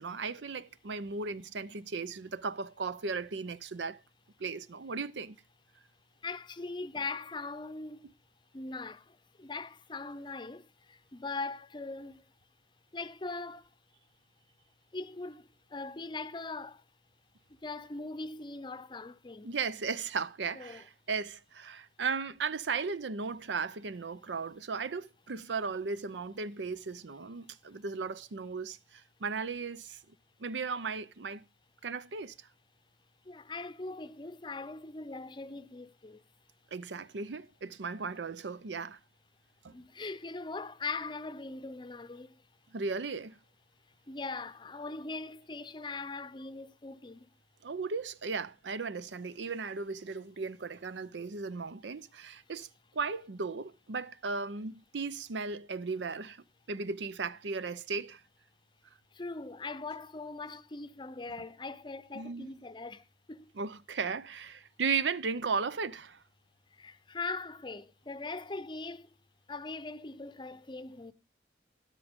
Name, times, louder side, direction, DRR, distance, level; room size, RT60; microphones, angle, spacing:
voice 1, 0.0-4.0 4.4-5.4 19.4-30.0 30.4-31.4 31.8-32.3 36.7-39.0 39.6-39.7 42.7-43.3 47.6-52.7 52.9-58.2 62.1-62.5 63.6-66.2, right 4 dB, 80° right, 0.6 m, -36 dB
voice 2, 6.2-8.1 8.5-12.3 12.9-13.7 14.9-16.8 17.6-19.6 20.5-20.8 33.2-36.2 39.7-42.4 44.1-47.3 59.1-63.5 66.7-69.1 69.5-71.1, left 3 dB, 25° left, 0.6 m, -41 dB
13.0 x 11.0 x 3.6 m
head